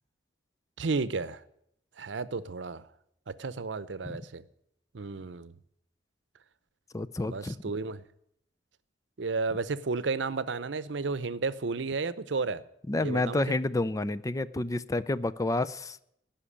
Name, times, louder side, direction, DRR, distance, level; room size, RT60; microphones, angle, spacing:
voice 1, 0.8-1.4 2.0-2.8 3.3-4.4 4.9-5.5 7.3-8.0 9.2-12.6 13.0-13.6, right 4 dB, 90° right, 16 dB, 0.7 m, -32 dB
voice 2, 6.9-7.5 12.9-16.0, left 2 dB, 20° left, 16 dB, 0.4 m, -29 dB
17.0 x 5.8 x 9.9 m, 0.76 s
head